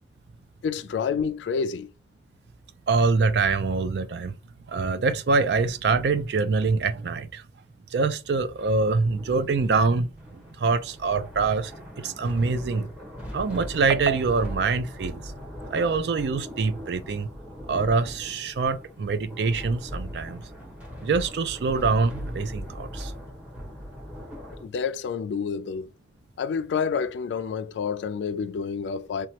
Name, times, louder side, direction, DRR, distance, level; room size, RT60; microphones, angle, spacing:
voice 1, 0.6-1.9 24.6-25.9 26.4-29.3, left 6 dB, 85° left, 0.3 m, -28 dB
voice 2, 2.9-4.3 4.7-7.4 7.9-11.7 12.0-12.9 13.3-15.3 15.7-17.3 17.7-20.4 21.0-23.1, right 4 dB, 70° right, 0.4 m, -25 dB
sound 1, 8.7-24.6, equal, 10° right, 1.0 m, -40 dB
3.0 x 2.2 x 2.8 m
head